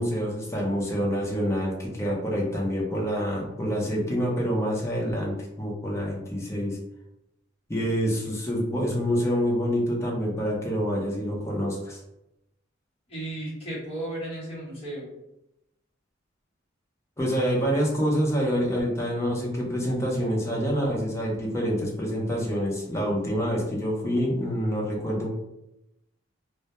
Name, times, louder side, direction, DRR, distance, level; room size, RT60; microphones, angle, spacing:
voice 1, 0.0-6.8 7.7-12.0 17.2-25.3, equal, 15° left, -2 dB, 0.6 m, -27 dB
voice 2, 13.1-15.1, right 1 dB, 30° left, -7 dB, 1.0 m, -34 dB
2.1 x 2.1 x 2.8 m, 0.87 s
head